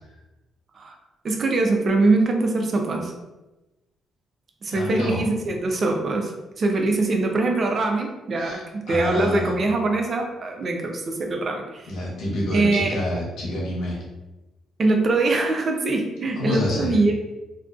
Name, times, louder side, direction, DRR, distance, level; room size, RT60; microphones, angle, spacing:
voice 1, 1.2-3.1 4.6-6.3 6.6-11.9 12.5-13.0 14.8-17.1, right 2 dB, 45° right, 3 dB, 0.4 m, -23 dB
voice 2, 4.7-5.2 8.4-9.5 11.9-14.0 16.4-17.0, left 1 dB, 85° left, -4 dB, 0.8 m, -27 dB
2.4 x 2.3 x 2.3 m, 1.1 s
cardioid pair, 90°, 0 cm